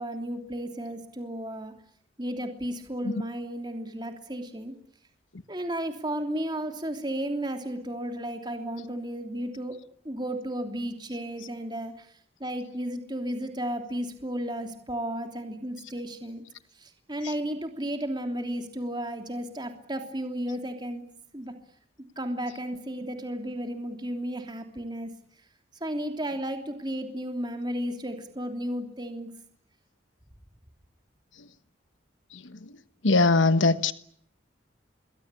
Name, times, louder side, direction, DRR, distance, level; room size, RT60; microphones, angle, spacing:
voice 1, 0.0-1.7 2.2-4.7 5.5-9.8 10.0-12.1 12.4-16.4 16.8-21.0 21.3-21.5 22.2-25.1 25.8-29.3, right 1 dB, 20° right, 3.1 m, -33 dB
voice 2, 33.0-33.9, left 3 dB, 80° left, 1.2 m, -22 dB
27.5 x 22.5 x 8.4 m
head